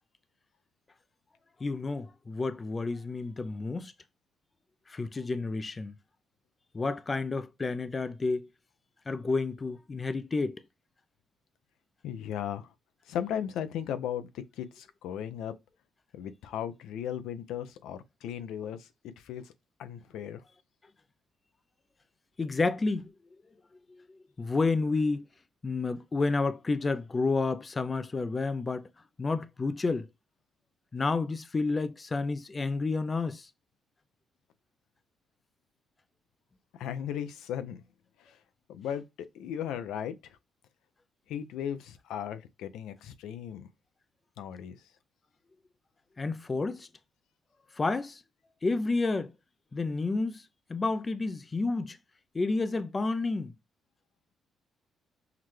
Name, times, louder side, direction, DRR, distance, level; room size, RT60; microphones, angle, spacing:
voice 1, 1.6-3.9 4.9-5.9 6.7-8.5 9.1-10.6 22.4-23.1 23.9-24.0 24.4-25.2 25.6-28.9 29.2-30.1 30.9-33.5 46.2-46.9 47.8-48.2 48.6-49.3 49.7-50.4 50.7-52.0 52.3-53.5, left 3 dB, 30° left, 0.4 m, -30 dB
voice 2, 12.0-12.7 13.1-15.5 16.1-19.4 19.8-20.4 36.8-37.8 38.7-40.2 41.3-43.7 44.4-44.8, left 9 dB, 85° left, 0.5 m, -36 dB
5.7 x 2.2 x 3.1 m
cardioid pair, 90°, 0 cm